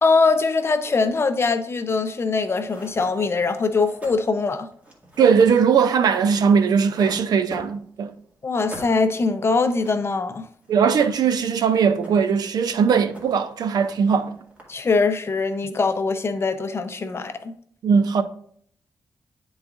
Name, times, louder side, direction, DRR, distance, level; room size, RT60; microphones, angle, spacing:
voice 1, 0.0-4.7 8.4-10.4 14.7-17.5, left 4 dB, 40° left, 0.5 m, -22 dB
sound 1, 2.3-2.4 2.7-8.2 8.5-10.1 10.3-10.4 10.6-11.6 11.8-12.4 12.7-13.5 13.7-14.9, right 1 dB, 20° right, 1.9 m, -42 dB
voice 2, 5.2-8.1 10.7-14.4 17.8-18.2, right 6 dB, 75° right, 0.5 m, -19 dB
10.5 x 3.9 x 2.4 m
cardioid pair, 95°, 7 cm